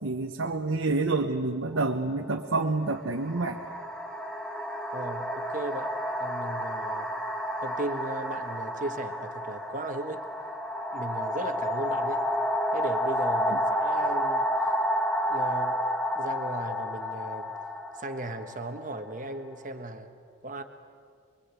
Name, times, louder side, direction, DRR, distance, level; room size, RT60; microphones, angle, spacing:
voice 1, 0.0-3.6, right 3 dB, 80° right, 3 dB, 1.0 m, -28 dB
sound 1, 1.8-1.9 2.9-19.5, equal, 5° left, 1.5 m, -30 dB
voice 2, 4.9-5.9 6.2-7.1 7.6-10.2 10.9-12.3 12.7-14.5 15.3-15.8 16.1-17.5 17.9-20.1 20.4-20.6, right 2 dB, 40° right, 7 dB, 1.4 m, -36 dB
24.5 x 22.5 x 8.3 m, 2.2 s
head